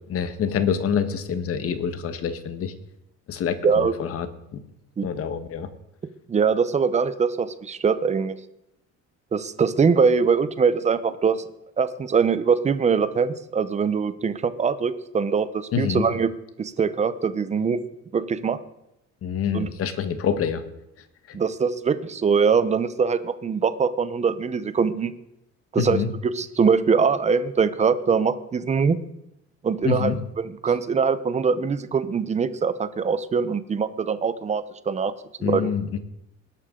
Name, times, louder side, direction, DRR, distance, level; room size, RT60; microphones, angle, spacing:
voice 1, 0.1-2.7 3.3-4.3 4.5-4.6 5.0-5.7 15.7-16.1 19.2-20.6 21.3-21.4 25.7-26.1 29.8-30.1 35.4-36.0, left 7 dB, 50° left, 11 dB, 1.3 m, -26 dB
voice 2, 3.6-4.0 5.0-5.1 6.3-8.4 9.3-11.4 11.8-16.3 16.6-17.8 18.1-18.6 19.5-19.7 21.3-25.1 25.7-29.0 29.6-35.1 35.4-35.7, right 5 dB, 25° right, 14 dB, 0.7 m, -22 dB
20.0 x 11.5 x 3.8 m, 0.84 s
cardioid pair, 165°, 29 cm